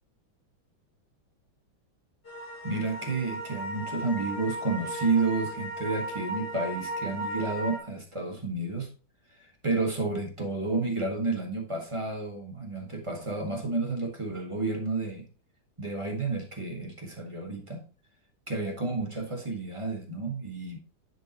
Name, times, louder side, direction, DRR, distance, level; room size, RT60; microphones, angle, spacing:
sound 1, 2.3-7.8, right 1 dB, 30° left, 1.7 m, -36 dB
voice 1, 2.6-8.9 9.4-15.3 15.8-17.8 18.5-20.8, right 3 dB, 20° right, 1 dB, 1.2 m, -31 dB
10.0 x 4.6 x 2.9 m, 0.37 s
omnidirectional pair, 2.2 m